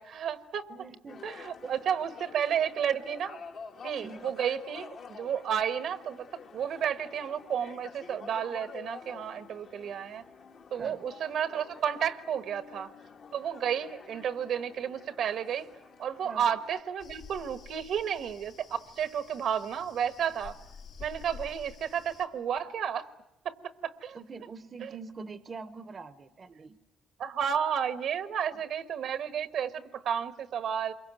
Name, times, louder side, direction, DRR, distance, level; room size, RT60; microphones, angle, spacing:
voice 1, 0.0-0.7 1.2-3.4 3.8-10.2 10.7-12.9 13.3-15.7 16.0-20.6 21.0-23.1 23.4-24.2 24.8-24.9 27.2-30.9, right 8 dB, 70° right, 13 dB, 1.3 m, -32 dB
voice 2, 0.7-1.3 1.6-1.7 4.0-4.3 10.7-11.0 16.2-16.5 24.1-26.8, right 4 dB, 40° right, 14 dB, 0.9 m, -44 dB
sound 1, 1.1-16.8, left 5 dB, 60° left, 1.7 m, -49 dB
sound 2, 17.0-22.3, left 5 dB, 85° left, 3.3 m, -49 dB
27.0 x 23.0 x 9.2 m, 0.93 s
cardioid pair, 90°, 0 cm